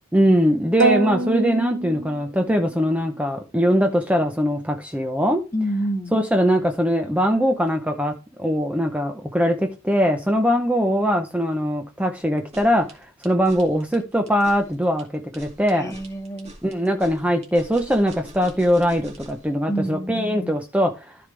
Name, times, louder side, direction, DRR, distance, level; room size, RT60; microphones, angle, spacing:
voice 1, 0.1-5.4 6.1-8.1 8.4-16.0 16.6-21.2, equal, 5° right, 0.7 m, -21 dB
sound 1, 0.8-2.8, right 3 dB, 65° right, 0.9 m, -24 dB
voice 2, 5.5-6.3 15.7-16.6 19.7-20.6, equal, 15° left, 1.1 m, -28 dB
sound 2, 12.4-19.5, right 1 dB, 30° right, 2.4 m, -44 dB
13.5 x 5.2 x 3.3 m
head